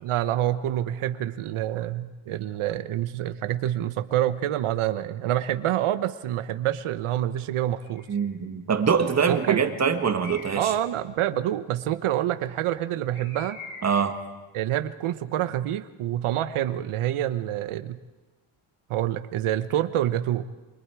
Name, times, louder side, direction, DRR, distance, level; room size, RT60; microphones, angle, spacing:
voice 1, 0.0-8.1 9.3-9.6 10.6-13.6 14.5-18.0 18.9-20.4, right 12 dB, 85° right, 11 dB, 1.1 m, -27 dB
Bird, 7.8-8.2 9.0-9.6 10.2-10.8 13.1-14.1, left 3 dB, 75° left, 7.8 m, -44 dB
voice 2, 8.1-10.7 13.8-14.2, right 6 dB, 30° right, 7 dB, 1.6 m, -24 dB
29.0 x 25.5 x 4.8 m, 1.2 s
cardioid pair, 175°, 49 cm